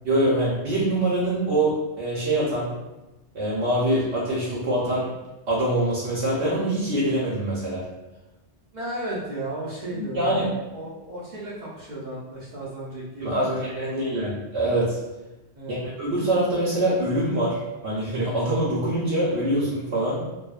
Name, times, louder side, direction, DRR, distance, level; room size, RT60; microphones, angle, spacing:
voice 1, 0.0-2.7 3.3-5.1 5.5-7.8 9.9-10.5 13.2-15.0 15.7-20.2, right 1 dB, 75° right, -6 dB, 0.9 m, -24 dB
voice 2, 8.7-14.3 15.5-15.9, right 1 dB, 55° right, -6 dB, 0.6 m, -34 dB
2.7 x 2.1 x 2.3 m, 1.1 s
omnidirectional pair, 1.1 m